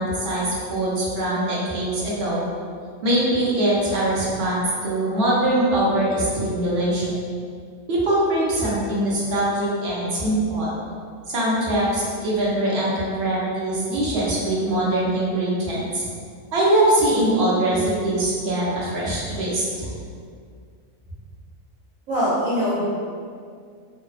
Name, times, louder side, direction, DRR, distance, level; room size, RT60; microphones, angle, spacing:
voice 1, 0.0-2.5 3.0-7.2 7.9-10.8 11.3-16.1 16.5-19.9, right 1 dB, 55° right, -7 dB, 0.8 m, -22 dB
voice 2, 22.1-22.9, equal, 90° right, -8 dB, 1.1 m, -22 dB
2.7 x 2.1 x 2.4 m, 2.1 s
omnidirectional pair, 1.4 m